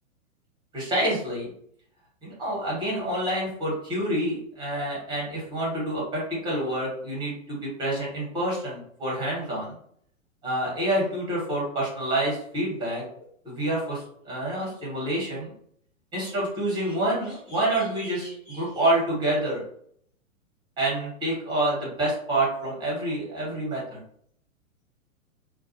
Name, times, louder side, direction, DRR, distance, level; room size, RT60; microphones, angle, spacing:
voice 1, 0.7-1.5 2.2-9.8 10.4-13.0 13.4-15.5 16.1-19.6 20.8-24.0, right 1 dB, 10° right, -4 dB, 1.3 m, -27 dB
2.4 x 2.4 x 2.6 m, 0.65 s
figure-of-eight pair, 115°, 42 cm